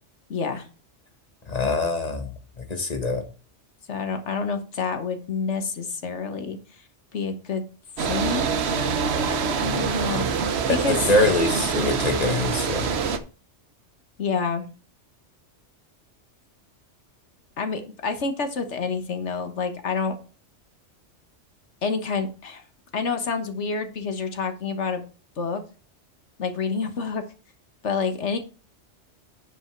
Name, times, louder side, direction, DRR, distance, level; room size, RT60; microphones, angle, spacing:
voice 1, 0.3-0.7 3.9-6.6 7.1-7.6 8.1-11.0 14.2-14.7 17.6-20.1 21.8-22.6 22.9-25.0 25.4-25.6 26.4-27.2 27.8-28.4, left 5 dB, 70° left, 7 dB, 1.6 m, -28 dB
voice 2, 1.5-2.3 2.7-3.2 10.7-12.9, left 2 dB, 35° left, 5 dB, 1.5 m, -24 dB
sound 1, 8.0-13.2, right 6 dB, 65° right, 1.1 m, -25 dB
9.8 x 5.4 x 4.5 m, 0.36 s
omnidirectional pair, 1.2 m